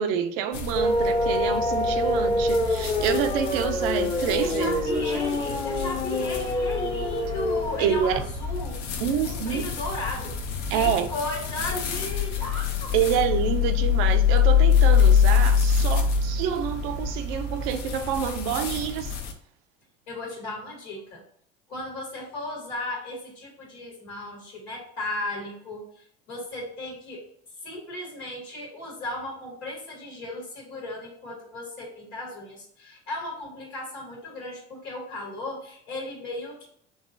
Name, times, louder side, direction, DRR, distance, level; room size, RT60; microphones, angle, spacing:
voice 1, 0.0-5.2 7.8-8.2 9.0-9.7 10.7-11.1 12.9-19.1, right 8 dB, 65° right, 0.6 m, -27 dB
sound 1, 0.5-19.3, left 7 dB, 60° left, 0.9 m, -25 dB
sound 2, 0.8-7.9, left 1 dB, 15° left, 0.8 m, -26 dB
voice 2, 4.4-10.4 10.7-12.9 20.1-21.2 21.7-27.3 27.6-36.7, left 1 dB, 80° left, 1.8 m, -35 dB
4.0 x 3.0 x 3.7 m
hypercardioid pair, 70°, 31 cm